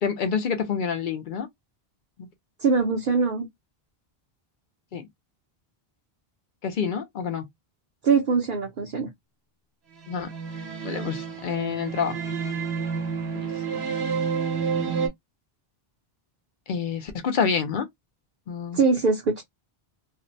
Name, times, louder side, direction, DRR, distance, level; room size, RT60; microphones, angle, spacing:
voice 1, 0.0-1.5 2.2-2.3 4.9-5.1 6.6-7.4 10.1-10.3 10.8-12.4 13.3-13.9 16.7-17.9 18.5-18.8, left 6 dB, 60° left, 0.7 m, -28 dB
voice 2, 2.6-3.5 8.0-9.1 18.7-19.4, right 4 dB, 60° right, 0.8 m, -22 dB
sound 1, 10.0-15.1, right 6 dB, 85° right, 1.0 m, -29 dB
2.5 x 2.1 x 2.6 m
omnidirectional pair, 1.0 m